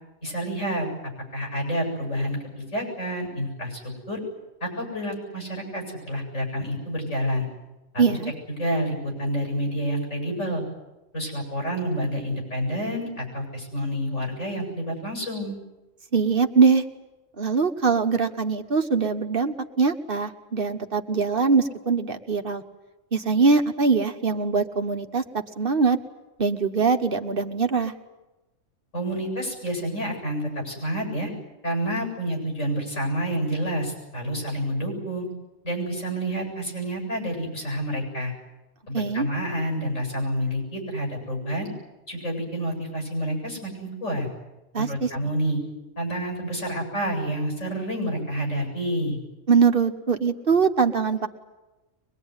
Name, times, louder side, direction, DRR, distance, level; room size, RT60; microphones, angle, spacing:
voice 1, 0.2-0.9 1.3-3.8 4.1-4.2 4.6-7.5 7.9-8.2 8.5-10.6 11.1-15.6 28.9-31.3 31.6-35.2 35.6-38.3 38.9-41.7 42.1-44.3 44.8-45.6 46.0-49.2, equal, 90° left, 1 dB, 8.4 m, -28 dB
voice 2, 8.0-8.3 16.1-16.8 17.4-22.6 23.1-25.2 25.6-26.0 26.4-27.9 38.9-39.3 44.7-45.1 49.5-51.3, right 5 dB, 50° right, 6 dB, 1.4 m, -22 dB
23.5 x 22.0 x 9.7 m, 1.1 s
omnidirectional pair, 1.3 m